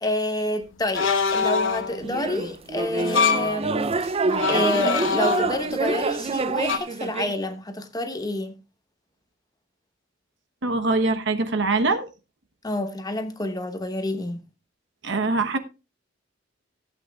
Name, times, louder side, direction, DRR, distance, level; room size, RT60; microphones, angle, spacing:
voice 1, 0.0-4.1 4.5-8.6 12.6-14.5, left 1 dB, 20° left, 0.9 m, -28 dB
sound 1, 1.0-2.0 3.0-3.6 4.3-5.8 6.7-6.8, left 5 dB, 80° left, 1.0 m, -24 dB
sound 2, 2.0-7.3, right 3 dB, 30° right, 0.5 m, -27 dB
voice 2, 10.6-12.1 15.0-15.6, right 3 dB, 65° right, 1.0 m, -23 dB
16.0 x 8.1 x 2.3 m
head